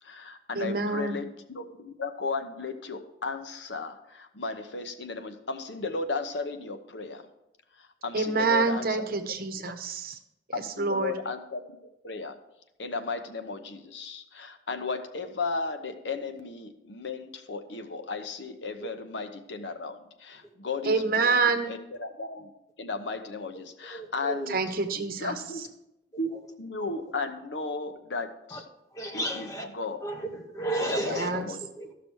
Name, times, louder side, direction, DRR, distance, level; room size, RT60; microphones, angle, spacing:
voice 1, 0.0-1.3 1.5-7.2 7.8-9.0 10.5-11.6 12.0-12.4 12.8-22.5 22.8-24.6 25.2-25.6 26.2-26.3 26.6-28.6 29.1-30.0 30.8-31.6, left 4 dB, 85° left, 7 dB, 0.9 m, -35 dB
voice 2, 0.5-1.2 8.1-10.2 10.5-11.2 20.8-21.7 24.5-25.3 31.0-31.5, right 4 dB, 55° right, 7 dB, 0.9 m, -27 dB
voice 3, 23.9-24.5 24.9-25.1 28.5-28.6 28.9-29.7 30.0-31.5 31.8-31.9, right 1 dB, 20° left, 3 dB, 1.1 m, -33 dB
13.5 x 6.0 x 4.6 m, 0.87 s
head